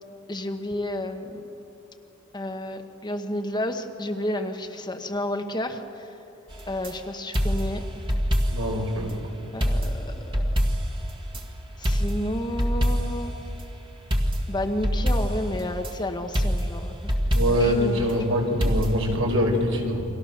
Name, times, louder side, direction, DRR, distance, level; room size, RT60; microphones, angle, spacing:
voice 1, 0.3-1.4 2.3-6.1 6.7-7.9 9.5-10.4 11.8-13.4 14.5-16.9 17.6-18.0, left 1 dB, 20° left, 5 dB, 1.2 m, -31 dB
sound 1, 6.5-6.9 7.3-8.8 9.1-9.2 9.6-11.4 11.8-13.3 14.1-15.9 16.3-17.8 18.6-19.1, equal, 25° right, 1.9 m, -25 dB
voice 2, 8.5-9.3 17.3-20.1, equal, 65° right, 1 dB, 4.9 m, -24 dB
30.0 x 25.0 x 6.7 m, 2.9 s
head